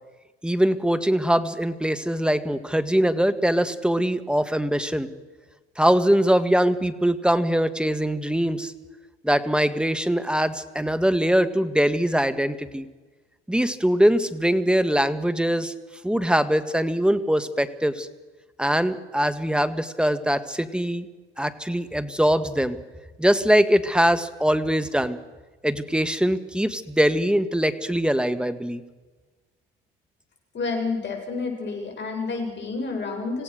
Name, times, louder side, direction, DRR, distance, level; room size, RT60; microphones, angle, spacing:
voice 1, 0.4-5.1 5.8-8.7 9.2-12.9 13.5-15.7 16.0-18.1 18.6-21.1 21.4-22.8 23.2-25.2 25.6-28.8, equal, 5° right, 11 dB, 1.6 m, -22 dB
voice 2, 30.5-33.4, left 4 dB, 40° left, 2 dB, 7.8 m, -29 dB
26.5 x 16.5 x 6.6 m, 1.3 s
hypercardioid pair, 75°, 30 cm